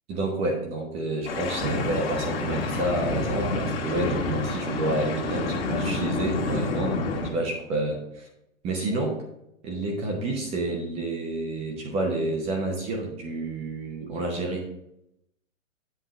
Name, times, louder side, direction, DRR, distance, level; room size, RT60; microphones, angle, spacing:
voice 1, 0.1-7.0 7.2-8.3 8.6-9.2 9.6-14.7, right 2 dB, 15° right, 1 dB, 0.8 m, -29 dB
sound 1, 1.2-7.3, left 2 dB, 45° left, 1.8 m, -28 dB
8.0 x 3.7 x 6.1 m, 0.81 s
hypercardioid pair, 155°, 40 cm